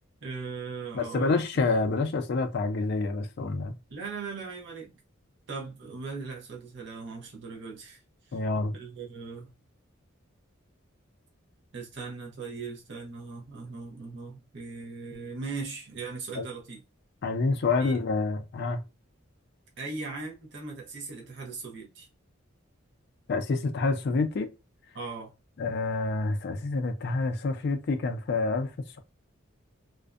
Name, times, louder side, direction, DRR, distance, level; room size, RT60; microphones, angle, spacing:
voice 1, 0.2-1.4 3.9-4.9 5.5-8.4 8.7-9.5 11.7-16.8 17.8-17.9 19.8-22.1 24.9-25.3, right 4 dB, 60° right, 0.7 m, -39 dB
voice 2, 0.9-3.8 8.3-8.7 16.4-16.5 17.2-18.8 23.3-24.5 25.6-29.0, left 3 dB, 55° left, 0.4 m, -28 dB
2.5 x 2.1 x 2.3 m
head